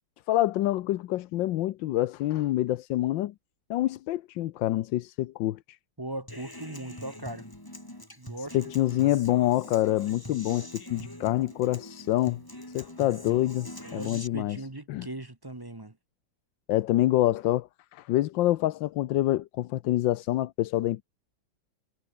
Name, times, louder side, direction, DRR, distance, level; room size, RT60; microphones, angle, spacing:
voice 1, 0.3-3.3 3.7-5.6 8.5-12.4 12.7-14.6 14.9-15.1 16.7-21.0, left 15 dB, 85° left, 1.4 m, -26 dB
voice 2, 6.0-7.5 8.2-8.6 13.8-16.0, right 1 dB, 15° right, 1.0 m, -39 dB
Human voice / Acoustic guitar, 6.3-14.3, left 1 dB, 10° left, 3.4 m, -43 dB
omnidirectional pair, 2.0 m